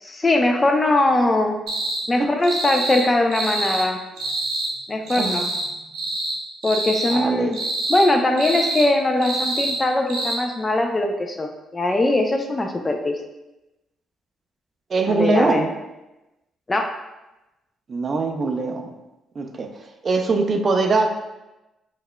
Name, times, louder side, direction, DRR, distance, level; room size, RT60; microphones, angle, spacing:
voice 1, 0.0-1.6 2.1-4.0 4.9-5.5 6.6-7.6 7.9-13.2 15.1-15.6 16.7-16.9, left 2 dB, 25° left, 4 dB, 0.4 m, -21 dB
sound 1, 1.7-2.0 2.4-3.0 3.3-3.9 4.2-4.7 5.1-5.7 5.9-6.4 6.6-7.2 7.5-8.1 8.4-8.9 9.2-9.8 10.1-10.3, right 2 dB, 85° right, 0.7 m, -26 dB
voice 2, 7.1-7.5 14.9-15.7 17.9-18.9 19.4-19.7 20.0-21.1, right 3 dB, 45° right, 4 dB, 0.4 m, -22 dB
4.6 x 2.3 x 2.2 m, 0.99 s
cardioid pair, 75°, 0 cm